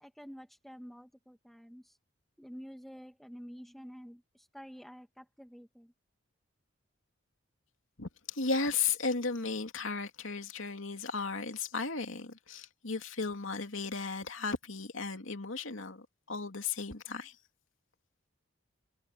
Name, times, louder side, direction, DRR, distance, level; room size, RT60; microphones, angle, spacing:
voice 1, 0.0-2.0 2.4-5.9, equal, ahead, 2.1 m, -49 dB
voice 2, 8.0-17.3, left 4 dB, 75° left, 2.7 m, -35 dB
head